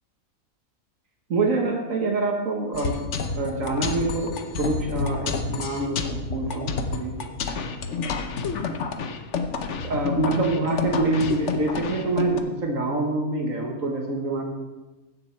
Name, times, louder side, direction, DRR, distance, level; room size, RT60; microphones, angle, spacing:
voice 1, 1.3-7.2 8.0-8.2 9.8-14.4, right 2 dB, 65° right, 1 dB, 1.6 m, -26 dB
sound 1, 2.7-12.4, left 4 dB, 60° left, 1.1 m, -29 dB
16.0 x 6.1 x 4.5 m, 1.1 s
omnidirectional pair, 1.5 m